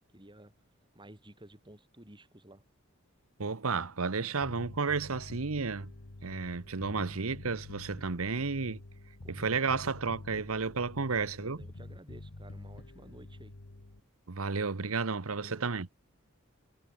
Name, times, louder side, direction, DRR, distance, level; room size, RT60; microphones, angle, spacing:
voice 1, 0.1-0.5 0.9-2.6 9.2-9.7 11.0-13.5 15.3-15.8, right 1 dB, 20° right, 3.6 m, -54 dB
voice 2, 3.4-5.9 6.2-8.8 9.3-11.6 14.3-15.9, right 4 dB, 85° right, 1.1 m, -32 dB
Bass guitar, 4.4-14.0, left 2 dB, 65° left, 1.4 m, -48 dB
head